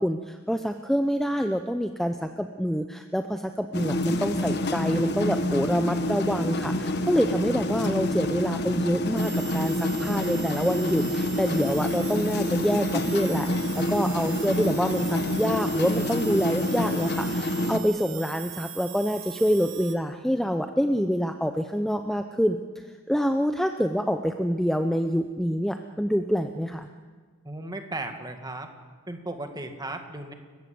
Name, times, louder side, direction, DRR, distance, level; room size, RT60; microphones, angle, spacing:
voice 1, 0.0-13.5 13.7-26.9, equal, ahead, 7 dB, 0.6 m, -26 dB
sound 1, 3.7-17.8, left 1 dB, 50° left, 1.4 m, -27 dB
sound 2, 9.2-20.0, right 12 dB, 60° right, 1.4 m, -41 dB
voice 2, 27.4-28.7 29.1-30.3, right 2 dB, 20° right, 5 dB, 1.9 m, -35 dB
29.5 x 15.0 x 7.7 m, 1.5 s
head